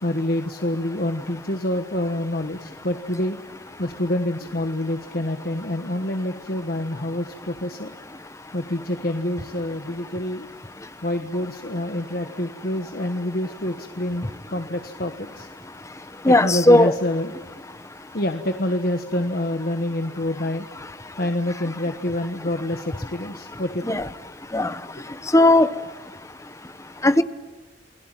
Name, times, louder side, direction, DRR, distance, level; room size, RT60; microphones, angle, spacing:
voice 1, 0.0-3.4 3.8-7.9 8.5-10.5 11.0-15.5 16.3-17.3 18.1-20.7 21.2-24.0, left 1 dB, 55° left, 6 dB, 1.4 m, -27 dB
voice 2, 16.3-16.9 23.9-24.0 24.5-24.7 25.3-25.7 27.0-27.2, left 1 dB, 15° left, 12 dB, 1.0 m, -15 dB
29.0 x 21.5 x 9.1 m, 1.2 s
head